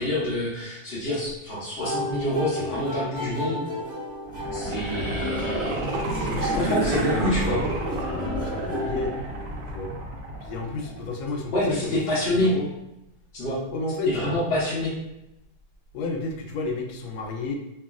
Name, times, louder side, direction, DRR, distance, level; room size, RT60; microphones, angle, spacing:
voice 1, 0.0-3.6 4.5-5.8 6.4-7.6 11.5-12.5 13.3-13.6 14.1-14.9, left 1 dB, 60° left, -8 dB, 0.6 m, -27 dB
sound 1, 1.8-9.8, left 1 dB, 5° left, 0.9 m, -34 dB
sound 2, 4.2-11.2 11.6-11.7, right 2 dB, 85° right, 0.7 m, -30 dB
voice 2, 5.8-9.1 9.7-9.9 10.4-12.0 12.3-12.7 13.7-14.3 15.9-17.6, left 3 dB, 85° left, 3 dB, 1.4 m, -32 dB
3.0 x 2.5 x 2.4 m, 0.91 s
omnidirectional pair, 2.1 m